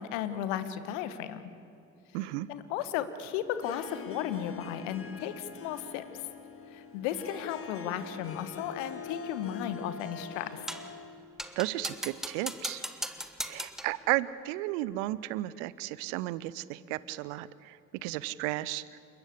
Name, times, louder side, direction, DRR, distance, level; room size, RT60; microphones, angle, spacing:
voice 1, 0.0-1.4 2.5-6.0 6.7-10.6, left 10 dB, 70° left, 12 dB, 1.3 m, -35 dB
voice 2, 2.1-2.5 11.6-12.8 13.4-19.0, right 17 dB, 65° right, 19 dB, 0.7 m, -34 dB
Harp, 3.4-11.3, left 6 dB, 35° left, 1.9 m, -44 dB
sound 1, 10.7-11.0 11.4-14.0, equal, ahead, 1.5 m, -38 dB
29.0 x 13.0 x 8.3 m, 2.8 s
figure-of-eight pair, 45°, 39 cm